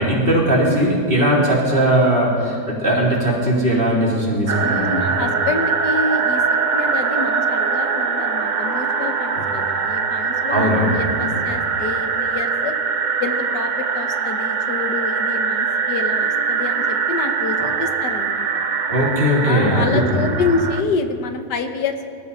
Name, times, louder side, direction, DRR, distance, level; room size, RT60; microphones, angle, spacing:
voice 1, 0.0-5.0 9.4-9.5 10.5-11.4 18.9-20.3, right 1 dB, 30° right, -5 dB, 3.8 m, -19 dB
sound 1, 4.5-20.8, right 5 dB, 75° right, 0.4 m, -22 dB
voice 2, 4.6-6.4 6.7-12.7 13.2-18.6 19.4-22.0, left 4 dB, 75° left, 6 dB, 1.6 m, -27 dB
24.5 x 13.5 x 4.2 m, 2.1 s
omnidirectional pair, 1.9 m